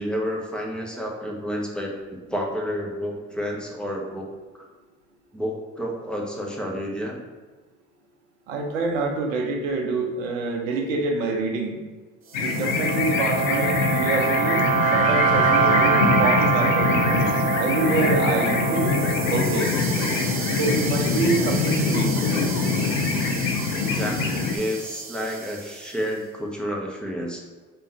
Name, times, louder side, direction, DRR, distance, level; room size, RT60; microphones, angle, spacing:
voice 1, 0.0-4.3 4.5-4.7 5.3-7.2 23.8-27.4, equal, ahead, -1 dB, 1.0 m, -30 dB
voice 2, 8.5-11.8 12.4-16.9 17.6-19.7 20.5-22.2, right 3 dB, 85° right, 2 dB, 0.7 m, -26 dB
sound 1, 12.3-24.6, left 4 dB, 85° left, 0.6 m, -24 dB
sound 2, 12.4-25.8, right 6 dB, 35° right, 0.7 m, -26 dB
3.6 x 3.0 x 4.5 m, 1.3 s
hypercardioid pair, 55°, 38 cm